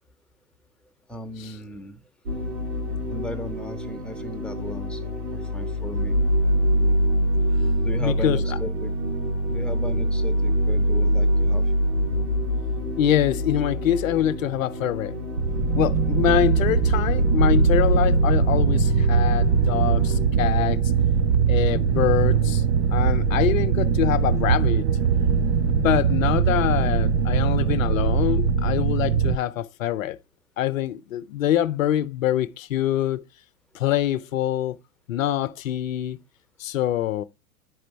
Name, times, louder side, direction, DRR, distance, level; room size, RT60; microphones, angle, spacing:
voice 1, 1.1-2.0 3.1-5.1 5.5-6.2 7.8-8.9 9.5-11.6, left 1 dB, ahead, 1.0 m, -36 dB
sound 1, 2.3-20.2, equal, 70° right, 2.7 m, -24 dB
voice 2, 8.0-8.6 13.0-15.2 15.7-20.8 21.5-22.6 22.9-24.9 25.6-30.2 30.6-33.2 33.7-34.8 35.1-36.2 36.6-37.2, left 11 dB, 65° left, 0.7 m, -25 dB
sound 2, 15.4-29.4, right 7 dB, 30° right, 0.4 m, -21 dB
11.0 x 5.0 x 3.2 m
figure-of-eight pair, 95°, 43 cm